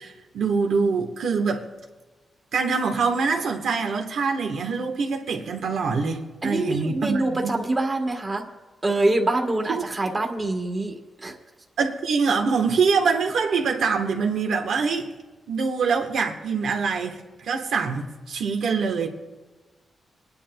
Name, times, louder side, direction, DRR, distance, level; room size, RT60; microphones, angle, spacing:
voice 1, 0.0-1.6 2.5-7.6 9.7-9.8 11.8-15.1 15.5-19.1, right 5 dB, 80° right, 3 dB, 1.2 m, -24 dB
voice 2, 6.4-8.4 8.8-11.0 11.2-11.3, right 2 dB, 20° right, 3 dB, 1.3 m, -25 dB
27.0 x 10.0 x 2.3 m, 1.3 s
wide cardioid pair, 175°, 0 cm